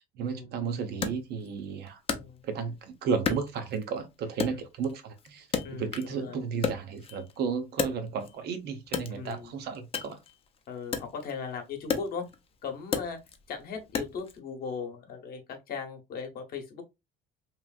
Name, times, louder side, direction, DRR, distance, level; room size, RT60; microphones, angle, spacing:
voice 1, 0.2-2.0 2.4-10.2, right 6 dB, 60° right, 0.7 m, -33 dB
Wood, 1.0-2.8 3.2-4.0 4.4-6.2 6.5-8.4 8.8-14.4, left 6 dB, 30° left, 0.5 m, -35 dB
voice 2, 2.1-2.4 4.4-4.6 5.6-6.4 9.1-9.5 10.7-12.3 12.6-13.2 13.5-16.8, left 5 dB, 50° left, 0.9 m, -38 dB
3.0 x 2.5 x 2.3 m
cardioid pair, 120°, 19 cm